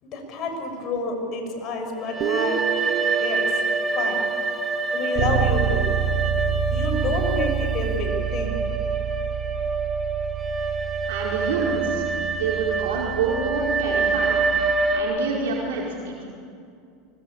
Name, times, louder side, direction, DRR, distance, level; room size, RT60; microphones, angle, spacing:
voice 1, 0.0-2.6 3.2-3.6 3.9-4.3 4.9-5.9 6.7-8.6, left 3 dB, 45° left, 3 dB, 6.6 m, -29 dB
sound 1, 2.0-15.0, right 4 dB, 20° right, 2.7 m, -26 dB
Guitar, 2.2-5.7, right 8 dB, 45° right, 1.6 m, -31 dB
Bass guitar, 5.2-15.0, right 8 dB, 70° right, 3.2 m, -28 dB
voice 2, 11.1-14.3 14.9-16.2, right 5 dB, 90° right, -3 dB, 4.9 m, -27 dB
24.5 x 21.0 x 8.9 m, 2.4 s
supercardioid pair, 120°, 0 cm